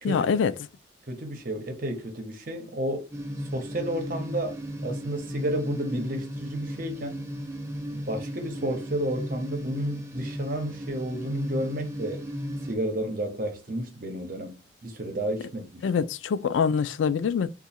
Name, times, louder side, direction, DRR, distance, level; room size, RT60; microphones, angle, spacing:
voice 1, 0.0-0.5 15.8-17.5, left 6 dB, 85° left, 0.3 m, -24 dB
voice 2, 1.1-3.1 3.5-7.2 7.9-12.2 12.6-16.1, right 1 dB, 50° right, 0.9 m, -32 dB
sound 1, 3.1-12.7, equal, 15° right, 0.5 m, -35 dB
3.0 x 2.4 x 4.2 m
head